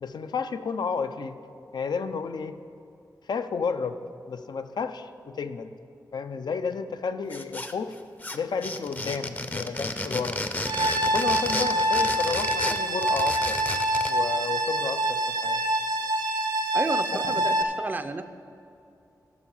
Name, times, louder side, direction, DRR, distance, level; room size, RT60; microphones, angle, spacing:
voice 1, 0.0-1.4 1.7-2.6 3.3-4.0 4.3-5.7 6.1-8.0 8.3-10.4 11.0-13.6 14.1-15.6 17.1-17.5, left 5 dB, 80° left, 9 dB, 0.5 m, -31 dB
sound 1, 7.3-7.9 8.2-14.2, left 2 dB, 25° left, 0.6 m, -32 dB
sound 2, 10.6-17.6, right 1 dB, 75° right, 0.6 m, -26 dB
voice 2, 16.7-18.2, right 3 dB, 25° right, 10 dB, 0.4 m, -31 dB
14.5 x 5.8 x 5.5 m, 2.6 s
wide cardioid pair, 95°, 7 cm